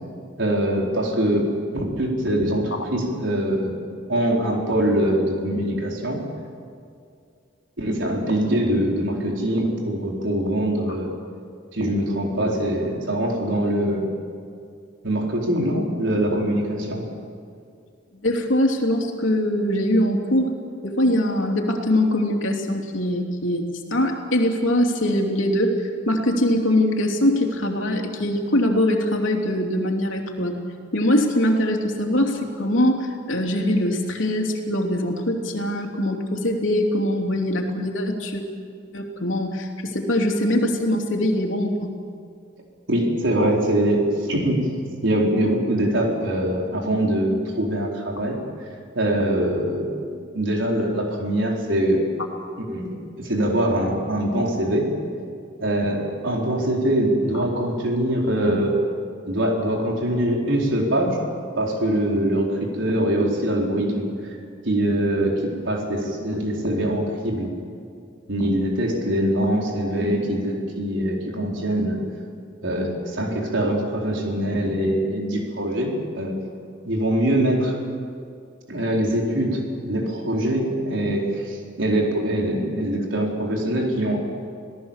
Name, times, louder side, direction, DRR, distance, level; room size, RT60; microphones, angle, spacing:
voice 1, 0.4-1.5 1.7-3.8 4.1-6.2 7.8-11.1 11.7-14.1 15.0-17.0 42.9-44.7 45.0-48.4 48.9-52.0 52.7-54.9 55.6-58.8 59.3-61.2 61.6-64.1 64.6-67.5 68.3-72.0 72.6-76.3 76.8-77.7 78.7-84.2, right 1 dB, 75° right, -1 dB, 4.3 m, -23 dB
voice 2, 18.2-20.5 20.8-23.6 23.9-25.8 26.1-30.6 30.9-38.4 38.9-41.9, left 1 dB, 85° left, 1 dB, 3.2 m, -22 dB
27.0 x 17.5 x 7.4 m, 2.3 s
head